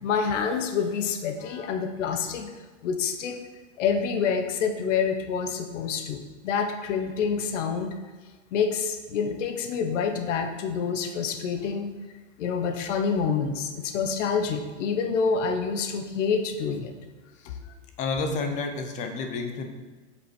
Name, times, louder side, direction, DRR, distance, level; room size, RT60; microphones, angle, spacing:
voice 1, 0.0-2.5 2.8-3.4 3.8-7.9 8.5-11.9 12.4-16.9 17.4-17.6, left 6 dB, 75° left, 6 dB, 1.1 m, -27 dB
voice 2, 18.0-19.7, left 4 dB, 20° left, 5 dB, 0.6 m, -30 dB
7.8 x 6.6 x 4.4 m, 1.3 s
supercardioid pair, 175°, 37 cm